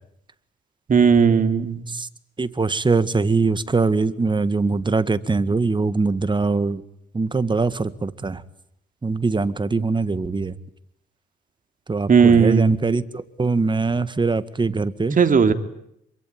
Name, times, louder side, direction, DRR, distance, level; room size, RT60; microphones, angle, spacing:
voice 1, 0.9-1.8 12.1-12.8 15.2-15.5, right 6 dB, 40° right, 8 dB, 3.4 m, -16 dB
voice 2, 2.4-6.8 7.1-8.4 9.0-10.5 11.9-15.2, right 4 dB, 25° right, 13 dB, 1.8 m, -22 dB
26.5 x 23.5 x 9.3 m, 0.75 s
cardioid pair, 90°, 20 cm